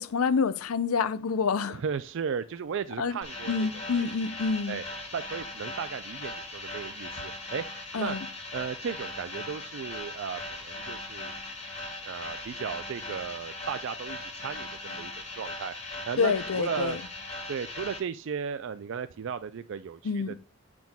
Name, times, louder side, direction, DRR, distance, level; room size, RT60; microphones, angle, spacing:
voice 1, 0.0-1.8 3.0-3.2 3.5-4.8 7.9-8.3 16.2-17.0 20.0-20.3, left 5 dB, 90° left, 0.5 m, -27 dB
voice 2, 1.7-4.1 4.7-4.8 5.1-7.6 8.0-8.2 8.5-11.4 12.0-15.7 16.0-17.0 17.5-20.4, right 6 dB, 60° right, 0.4 m, -35 dB
sound 1, 3.2-18.0, left 2 dB, 30° left, 2.3 m, -39 dB
8.6 x 6.0 x 2.3 m
head